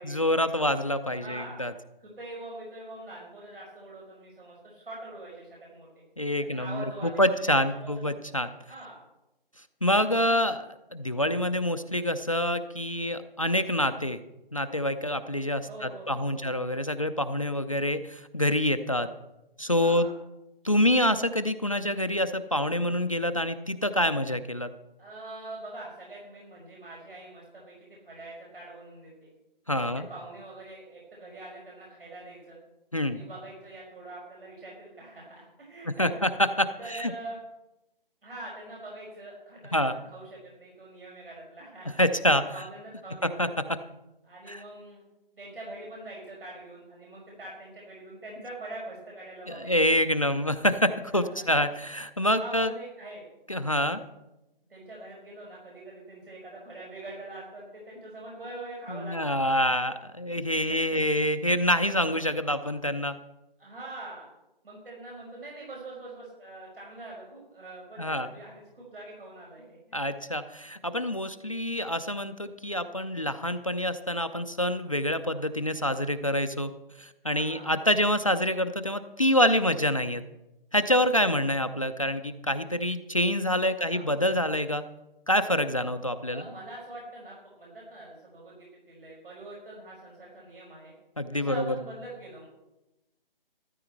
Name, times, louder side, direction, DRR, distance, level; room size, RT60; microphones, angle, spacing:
voice 1, 0.0-1.7 6.2-8.5 9.8-14.2 14.5-19.1 19.6-20.1 20.6-24.7 29.7-30.1 32.9-33.2 36.0-37.1 39.7-40.0 42.0-42.4 43.4-43.5 44.5-44.6 49.5-52.7 53.5-54.0 58.9-63.2 68.0-68.3 69.9-76.7 77.0-80.3 80.7-84.8 85.3-86.4 91.2-91.7, equal, 35° left, 11 dB, 0.5 m, -26 dB
voice 2, 1.1-1.7 2.0-6.0 6.4-8.2 8.7-9.0 15.7-16.5 19.7-20.1 25.0-29.3 29.7-32.6 33.1-36.3 36.8-37.4 38.2-42.0 42.5-43.5 44.2-45.0 45.3-49.9 51.1-51.6 52.4-53.3 54.7-59.6 60.5-61.2 63.6-64.3 64.6-69.8 77.2-77.7 83.7-84.1 86.3-90.9 91.3-92.5, right 2 dB, 70° right, -3 dB, 5.6 m, -44 dB
13.5 x 13.0 x 4.5 m, 0.94 s
hypercardioid pair, 180°, 29 cm